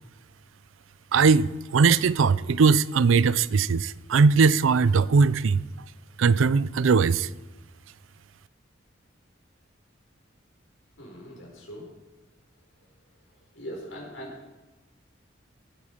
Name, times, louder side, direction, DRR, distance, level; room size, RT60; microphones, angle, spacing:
voice 1, 1.1-5.6 6.2-7.3, right 5 dB, 80° right, 0.5 m, -20 dB
voice 2, 11.0-11.9 13.5-14.5, equal, 90° left, 5.5 m, -41 dB
18.5 x 9.4 x 5.1 m
head